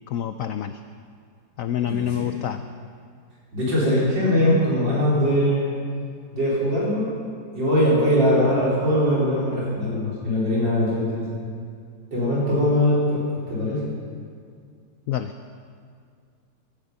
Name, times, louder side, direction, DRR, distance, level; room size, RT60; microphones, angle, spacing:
voice 1, 0.1-0.8 1.6-2.6 15.1-15.3, left 10 dB, 85° left, 9 dB, 0.7 m, -27 dB
voice 2, 1.8-2.3 3.5-5.7 6.3-7.1 7.5-11.3 12.1-13.9, equal, 75° right, -7 dB, 5.0 m, -21 dB
16.5 x 12.0 x 5.5 m, 2.2 s
omnidirectional pair, 2.0 m